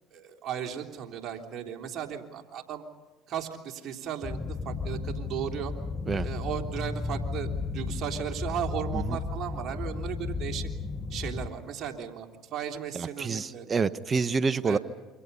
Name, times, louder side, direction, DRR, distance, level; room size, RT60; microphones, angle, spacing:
voice 1, 0.1-2.8 3.3-4.4 4.6-5.7 6.2-7.5 7.7-10.7 11.1-13.7 14.6-14.8, right 9 dB, 55° right, 3 dB, 3.3 m, -36 dB
sound 1, 4.2-11.5, left 4 dB, 20° left, 1.9 m, -34 dB
voice 2, 12.9-14.8, right 5 dB, 35° right, 14 dB, 1.1 m, -28 dB
28.5 x 25.5 x 5.5 m, 1.2 s
supercardioid pair, 75°, 0 cm